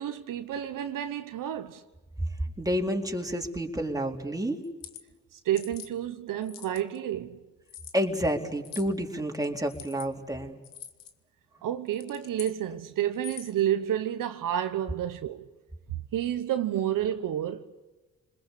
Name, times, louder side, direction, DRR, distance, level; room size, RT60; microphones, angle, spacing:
voice 1, 0.0-1.8 5.4-7.4 11.6-15.5 16.1-17.7, right 11 dB, 75° right, 1.2 m, -30 dB
voice 2, 2.6-4.7 7.9-10.6, equal, 10° right, 4.1 m, -29 dB
sound 1, 4.6-5.0 5.6-5.9 6.4-7.0 7.7-8.0 8.6-8.9 9.7-10.1 10.6-11.1 11.9-12.6 13.1-13.6, left 10 dB, 85° left, 1.7 m, -44 dB
29.5 x 21.0 x 8.4 m
supercardioid pair, 55°, 33 cm